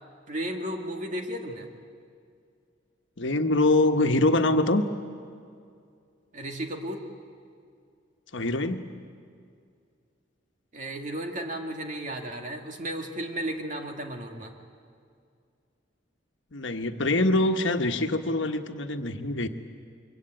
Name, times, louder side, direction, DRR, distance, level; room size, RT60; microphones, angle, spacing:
voice 1, 0.3-1.7 6.3-7.1 10.7-14.5, right 1 dB, 40° right, 3 dB, 2.3 m, -34 dB
voice 2, 3.2-4.8 8.3-8.8 16.5-19.5, left 2 dB, 75° left, 6 dB, 1.4 m, -24 dB
25.0 x 24.0 x 9.0 m, 2.3 s
head